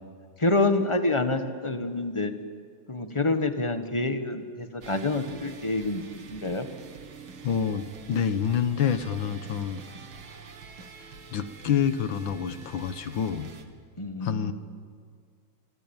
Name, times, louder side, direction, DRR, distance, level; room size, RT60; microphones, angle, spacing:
voice 1, 0.4-2.3 2.9-6.0 6.3-6.7 14.0-14.5, left 2 dB, 15° left, 7 dB, 1.4 m, -27 dB
sound 1, 4.8-13.7, right 5 dB, 75° right, 2.7 m, -46 dB
voice 2, 7.4-9.8 11.3-13.5 14.2-14.5, left 8 dB, 65° left, 11 dB, 1.8 m, -27 dB
26.5 x 25.0 x 9.0 m, 2.1 s
omnidirectional pair, 2.3 m